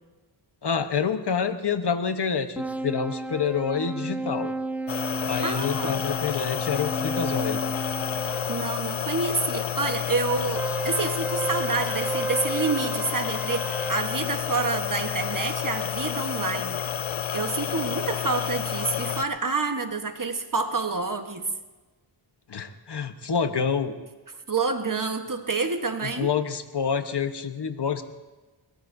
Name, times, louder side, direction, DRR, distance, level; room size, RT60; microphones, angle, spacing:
voice 1, 0.6-4.5 5.3-7.6 22.5-23.9 26.0-28.0, left 6 dB, 55° left, 9 dB, 1.1 m, -27 dB
sound 1, 2.6-8.6 10.6-14.0, right 3 dB, 5° right, 0.5 m, -33 dB
sound 2, 4.9-19.2, left 10 dB, 75° left, 0.6 m, -30 dB
voice 2, 5.4-6.1 8.2-16.8 17.0-21.4 24.5-26.3, right 4 dB, 40° right, 6 dB, 1.2 m, -28 dB
22.0 x 19.5 x 2.7 m, 1.2 s
wide cardioid pair, 70°, 47 cm